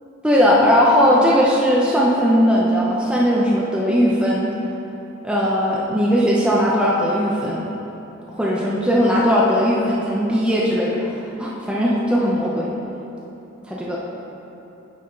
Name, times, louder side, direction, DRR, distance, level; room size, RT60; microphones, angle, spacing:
voice 1, 0.2-4.5 5.2-7.6 8.3-12.7 13.7-14.0, equal, 5° right, -5 dB, 0.7 m, -18 dB
8.5 x 7.7 x 3.9 m, 3.0 s
head